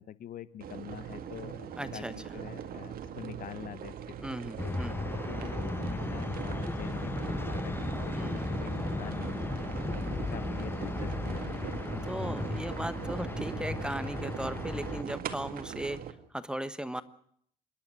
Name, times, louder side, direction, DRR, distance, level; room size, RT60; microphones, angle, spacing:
voice 1, 0.0-7.7 8.0-9.3 9.7-11.8, left 10 dB, 55° left, 16 dB, 1.1 m, -45 dB
sound 1, 0.6-16.1, right 9 dB, 60° right, 2.1 m, -40 dB
voice 2, 1.8-2.3 4.2-5.0 8.1-8.5 12.1-17.0, right 1 dB, 5° right, 13 dB, 1.2 m, -37 dB
sound 2, 4.6-15.0, left 3 dB, 15° left, 0.9 m, -35 dB
27.0 x 11.5 x 9.7 m, 0.64 s
cardioid pair, 110°, 17 cm